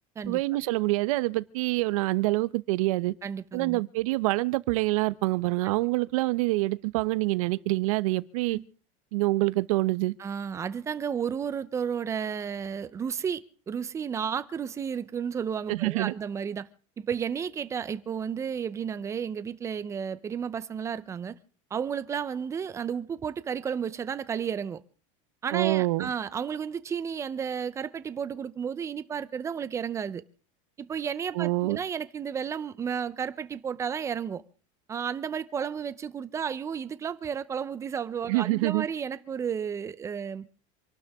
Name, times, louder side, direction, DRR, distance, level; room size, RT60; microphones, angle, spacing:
voice 1, 0.3-3.1 3.5-8.6 9.1-10.1 15.7-16.1 25.5-26.1 31.3-31.8 38.3-38.8, right 21 dB, 80° right, 0.8 m, -26 dB
voice 2, 3.2-3.8 8.5-8.6 10.2-16.7 17.0-21.4 21.7-24.8 25.4-30.2 30.8-34.4 34.9-40.4, right 7 dB, 15° right, 0.7 m, -32 dB
27.0 x 12.0 x 3.6 m
supercardioid pair, 165°, 17 cm